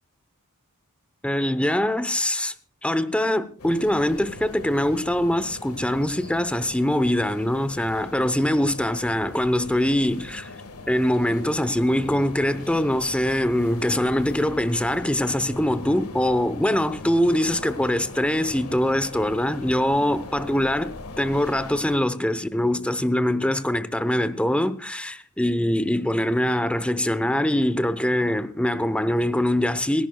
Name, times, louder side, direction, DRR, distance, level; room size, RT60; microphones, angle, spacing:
voice 1, 1.2-2.5 2.8-10.5 10.9-30.1, left 1 dB, 5° left, 0.8 m, -23 dB
sound 1, 3.6-22.0, left 2 dB, 85° left, 1.7 m, -40 dB
28.5 x 11.5 x 2.3 m
head